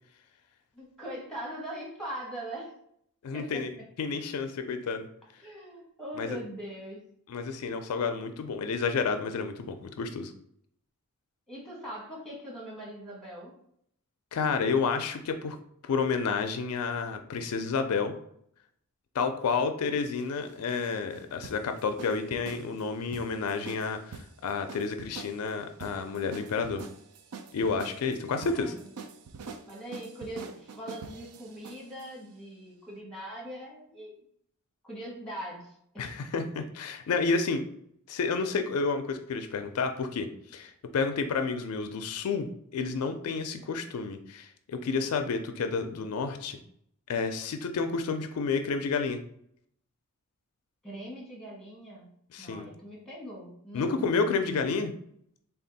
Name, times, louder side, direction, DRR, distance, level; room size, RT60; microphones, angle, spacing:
voice 1, 0.7-2.7 3.3-3.8 5.4-7.0 11.5-13.5 28.4-28.9 29.7-34.2 34.8-36.1 50.8-52.1 52.4-54.1, right 1 dB, ahead, -4 dB, 1.1 m, -41 dB
voice 2, 3.2-3.7 4.0-5.1 6.2-6.4 7.3-10.3 14.3-15.6 15.8-18.1 19.1-26.9 27.5-28.7 36.0-37.6 38.1-46.6 47.1-49.2 52.3-52.6 53.7-54.9, left 4 dB, 75° left, 8 dB, 0.4 m, -30 dB
sound 1, 20.1-32.1, right 5 dB, 80° right, 0.4 m, -45 dB
3.4 x 2.3 x 3.9 m, 0.68 s
head